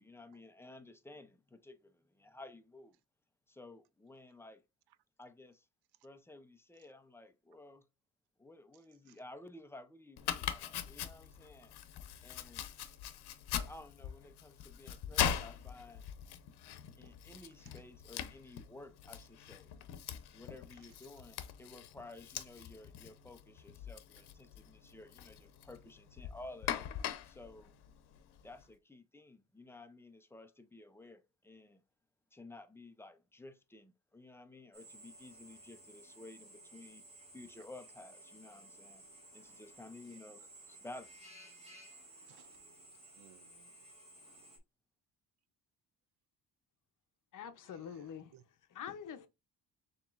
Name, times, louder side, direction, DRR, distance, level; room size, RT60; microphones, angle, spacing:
voice 1, 0.0-3.0 3.5-4.6 5.2-5.7 6.0-7.9 8.4-11.7 12.2-12.7 13.7-16.0 17.0-19.7 20.3-26.9 27.2-27.7 28.4-31.8 32.3-37.1 37.3-39.0 39.3-41.3, left 2 dB, 5° left, 0.4 m, -54 dB
Domestic sounds home sounds, 10.2-28.6, left 10 dB, 85° left, 0.7 m, -42 dB
Drill, 34.7-44.6, right 1 dB, 15° right, 1.8 m, -56 dB
voice 2, 42.2-42.6 43.1-43.9 47.6-48.4, right 12 dB, 80° right, 0.5 m, -64 dB
voice 3, 47.3-48.3 48.7-49.3, left 8 dB, 55° left, 0.7 m, -45 dB
7.0 x 2.9 x 2.4 m
cardioid pair, 140°, 38 cm